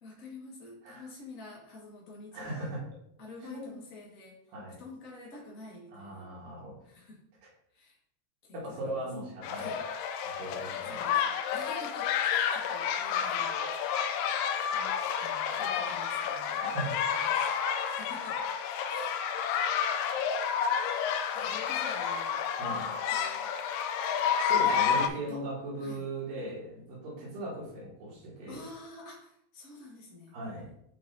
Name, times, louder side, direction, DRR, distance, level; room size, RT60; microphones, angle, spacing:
voice 1, 0.0-2.7 3.2-4.4 4.8-6.3 6.8-7.2 7.7-8.0 8.4-9.0 9.5-9.8 10.8-13.9 14.7-16.6 16.9-18.4 18.8-19.2 20.8-22.4 22.7-23.5 24.9-25.4 25.8-26.1 28.5-30.4, left 2 dB, 65° left, -3 dB, 0.8 m, -49 dB
voice 2, 2.3-2.8 3.4-3.7 4.5-4.8 5.9-6.8 8.5-9.7 10.2-11.1 16.7-16.9 22.6-22.8 24.5-28.6 30.3-30.7, right 1 dB, 80° right, -6 dB, 3.6 m, -38 dB
sound 1, 9.4-25.1, left 7 dB, 80° left, 2.2 m, -30 dB
7.7 x 3.7 x 3.9 m, 0.73 s
omnidirectional pair, 3.9 m